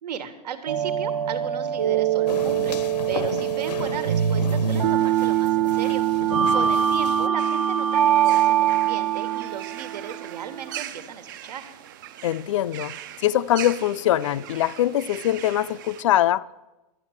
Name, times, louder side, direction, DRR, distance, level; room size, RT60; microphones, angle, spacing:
voice 1, 0.0-6.0 6.5-11.7, right 8 dB, 85° right, 1.5 m, -35 dB
sound 1, 0.7-10.8, right 10 dB, 60° right, 0.8 m, -23 dB
sound 2, 2.3-7.3, left 7 dB, 90° left, 1.0 m, -35 dB
sound 3, 7.4-16.0, right 11 dB, 30° right, 0.4 m, -41 dB
voice 2, 12.2-12.9 13.2-16.5, left 12 dB, 50° left, 0.4 m, -23 dB
12.0 x 8.7 x 7.2 m
supercardioid pair, 170°, 21 cm